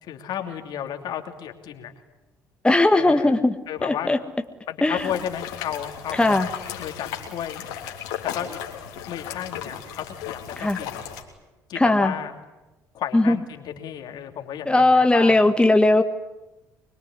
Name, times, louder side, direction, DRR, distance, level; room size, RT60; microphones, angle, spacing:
voice 1, 0.0-1.9 2.9-3.4 3.7-4.1 4.7-6.5 6.8-7.6 8.2-8.6 9.1-11.1 11.7-12.3 12.9-15.4, left 9 dB, 65° left, 5 dB, 2.9 m, -33 dB
voice 2, 2.6-3.5 3.8-4.2 4.8-5.1 6.1-6.5 10.6-10.8 11.7-12.1 13.1-13.4 14.7-16.0, left 2 dB, 10° left, 7 dB, 1.7 m, -18 dB
sound 1, 5.0-11.2, left 9 dB, 80° left, 3.4 m, -35 dB
25.0 x 22.0 x 9.9 m, 1.0 s
hypercardioid pair, 60°, 8 cm